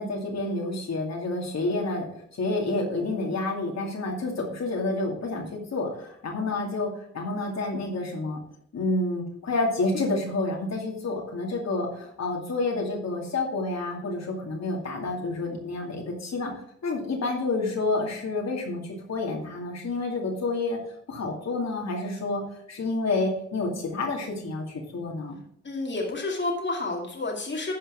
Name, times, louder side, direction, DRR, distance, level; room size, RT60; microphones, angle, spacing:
voice 1, 0.0-2.1 2.4-8.4 8.7-16.5 16.8-20.8 21.1-22.4 22.7-25.4, left 2 dB, 65° left, 0 dB, 2.5 m, -29 dB
voice 2, 25.6-27.7, left 2 dB, 40° left, 0 dB, 2.2 m, -30 dB
11.5 x 4.5 x 5.8 m, 0.68 s
cardioid pair, 60°, 29 cm